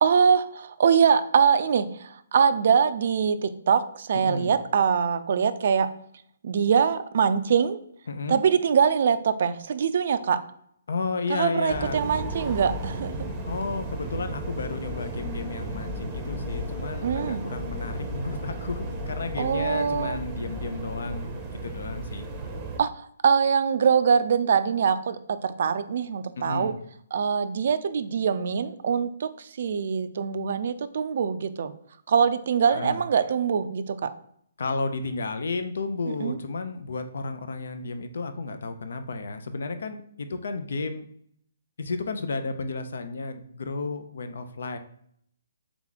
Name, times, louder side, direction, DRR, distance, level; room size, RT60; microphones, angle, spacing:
voice 1, 0.0-5.9 6.4-7.8 8.3-10.4 11.3-13.2 17.0-17.5 19.4-20.2 22.8-22.9 23.2-26.7 27.1-31.7 32.1-34.1 36.2-36.4, right 6 dB, 60° right, 12 dB, 0.3 m, -23 dB
voice 2, 4.1-4.5 8.1-8.4 10.9-12.0 13.4-22.3 26.4-26.8 32.7-33.0 34.6-41.1 41.8-44.8, left 3 dB, 70° left, 9 dB, 0.5 m, -32 dB
sound 1, 11.7-22.8, right 1 dB, 15° right, 0.7 m, -34 dB
3.6 x 2.9 x 3.9 m, 0.66 s
hypercardioid pair, 145°, 0 cm